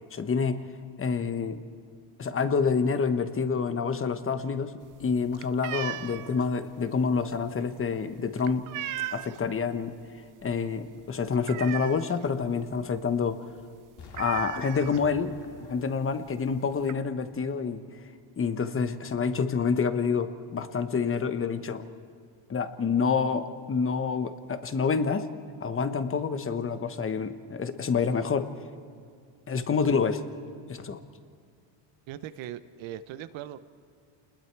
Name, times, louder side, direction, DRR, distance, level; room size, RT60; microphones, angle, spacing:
voice 1, 0.1-0.6 1.0-1.6 2.2-8.7 9.1-9.9 10.4-13.4 14.2-15.3 15.7-17.8 18.4-21.8 22.5-25.3 25.6-28.5 29.5-30.2 30.7-31.0, left 5 dB, 25° left, 10 dB, 1.1 m, -27 dB
sound 1, 4.8-9.6 9.9-10.3 10.5-10.6 11.0-12.4 12.7-12.8 13.1-13.3 13.6-13.7 14.1-15.4 16.1-16.2 16.5-16.9, right 14 dB, 40° right, 0.6 m, -38 dB
Explosion, 14.0-17.9 18.4-18.5, left 5 dB, 55° left, 2.3 m, -51 dB
voice 2, 32.1-33.6, right 11 dB, 70° right, 13 dB, 1.0 m, -39 dB
28.5 x 20.5 x 4.7 m, 2.2 s
supercardioid pair, 100°, 49 cm